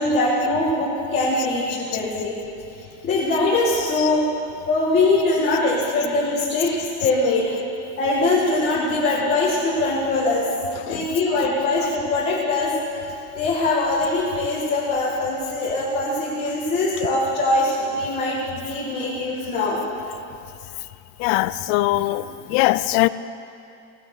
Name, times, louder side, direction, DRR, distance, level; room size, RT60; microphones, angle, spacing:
voice 1, 0.0-2.4 3.0-4.3 4.7-7.5 8.0-10.4 10.9-12.7 13.4-19.8, left 2 dB, 25° left, 2.0 m, -22 dB
voice 2, 21.2-22.2 22.5-23.1, left 18 dB, 65° left, 0.5 m, -20 dB
18.5 x 7.1 x 6.5 m
cardioid pair, 175°, 39 cm